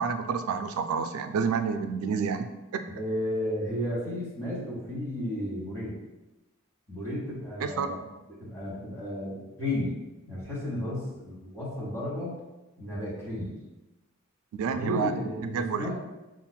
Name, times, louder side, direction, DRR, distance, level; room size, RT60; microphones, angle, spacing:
voice 1, 0.0-2.5 2.7-2.8 7.6-8.1 14.5-15.9, right 5 dB, 80° right, 8 dB, 0.3 m, -29 dB
voice 2, 2.9-6.0 6.9-7.9 8.3-10.0 10.3-12.4 12.8-13.5 14.7-15.9, left 1 dB, 15° left, -6 dB, 1.1 m, -33 dB
5.4 x 2.4 x 2.2 m, 1.0 s
head